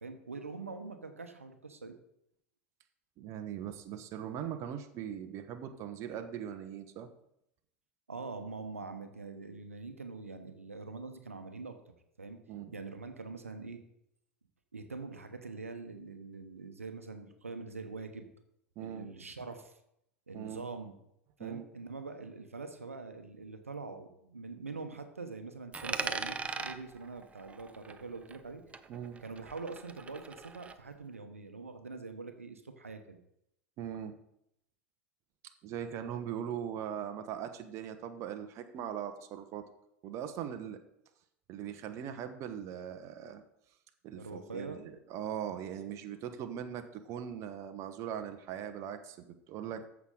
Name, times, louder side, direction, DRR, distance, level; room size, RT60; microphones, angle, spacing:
voice 1, 0.0-1.9 8.1-11.8 12.2-12.4 12.7-13.8 14.7-18.3 18.8-19.7 20.3-20.9 21.4-28.6 29.2-33.2 44.2-44.8, right 4 dB, 85° right, 7 dB, 1.1 m, -44 dB
voice 2, 3.2-7.1 12.5-12.8 18.8-19.1 20.3-20.7 21.4-21.6 28.9-29.2 33.8-34.1 35.6-39.7 40.0-40.8 41.5-43.4 44.0-50.0, right 9 dB, 45° right, 8 dB, 1.0 m, -40 dB
Coin (dropping), 25.7-28.5 28.7-30.7, right 4 dB, 15° right, 0.8 m, -40 dB
14.0 x 6.1 x 3.9 m, 0.78 s
figure-of-eight pair, 85°, 7 cm